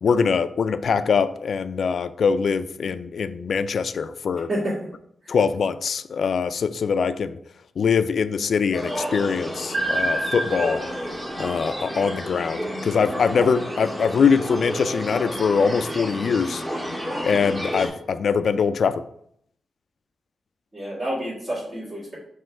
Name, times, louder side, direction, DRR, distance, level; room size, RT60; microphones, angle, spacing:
voice 1, 0.0-4.5 5.3-7.4 7.8-10.8 11.4-16.6 17.2-19.0, left 6 dB, 65° left, 0.3 m, -23 dB
sound 1, 8.7-17.9, equal, 15° right, 1.4 m, -31 dB
sound 2, 9.7-12.7, right 1 dB, 65° right, 1.0 m, -29 dB
voice 2, 20.7-22.2, right 1 dB, 35° right, 2.4 m, -29 dB
5.6 x 3.1 x 5.5 m
wide cardioid pair, 115°, 0 cm